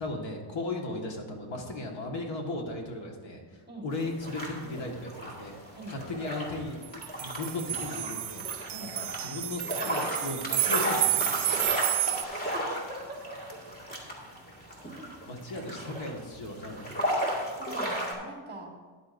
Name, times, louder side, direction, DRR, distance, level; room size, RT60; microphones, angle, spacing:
voice 1, 0.0-5.5 5.9-8.4 8.8-11.7 15.3-17.2, left 2 dB, 65° left, 1 dB, 1.7 m, -37 dB
sound 1, 3.9-18.1, equal, 20° left, 2.0 m, -35 dB
sound 2, 6.8-12.2, right 15 dB, 60° right, 0.5 m, -30 dB
voice 2, 12.5-13.4 17.6-18.7, right 1 dB, 20° right, 0 dB, 1.5 m, -42 dB
13.0 x 10.0 x 2.6 m, 1.5 s
wide cardioid pair, 175°, 48 cm